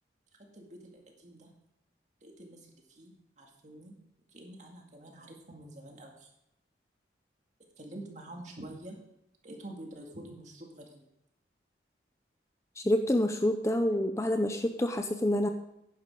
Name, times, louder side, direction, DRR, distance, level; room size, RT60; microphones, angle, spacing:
voice 1, 0.5-1.5 2.2-3.9 4.3-6.3 7.8-9.0 9.4-11.0, right 1 dB, 40° right, 1 dB, 2.2 m, -47 dB
voice 2, 12.8-15.5, left 1 dB, 15° left, 6 dB, 0.6 m, -27 dB
10.5 x 10.5 x 3.8 m, 0.84 s
head